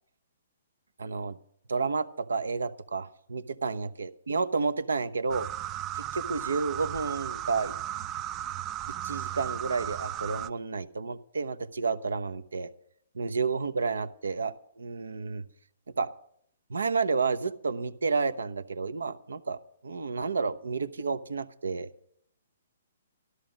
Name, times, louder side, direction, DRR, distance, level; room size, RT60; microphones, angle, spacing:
voice 1, 1.0-1.4 1.7-5.5 5.9-7.7 8.9-12.7 13.1-15.4 16.0-16.1 16.7-21.9, right 4 dB, 85° right, 13 dB, 0.8 m, -31 dB
sound 1, 5.3-10.5, right 12 dB, 25° right, 0.4 m, -35 dB
13.0 x 13.0 x 5.1 m, 0.68 s
hypercardioid pair, 135°, 0 cm